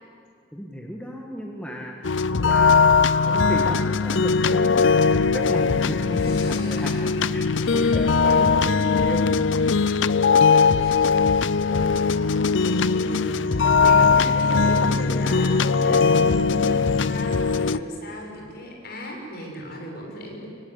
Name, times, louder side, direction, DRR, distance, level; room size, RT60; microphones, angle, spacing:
voice 1, 0.5-2.8 3.2-9.4 9.9-10.0, equal, 5° left, 0 dB, 1.9 m, -35 dB
sound 1, 2.0-17.8, left 5 dB, 80° left, 0.6 m, -20 dB
voice 2, 6.2-7.2 7.5-8.1 10.2-11.1 11.6-20.5, equal, 50° left, 0 dB, 6.6 m, -37 dB
25.0 x 23.5 x 9.9 m, 2.3 s
head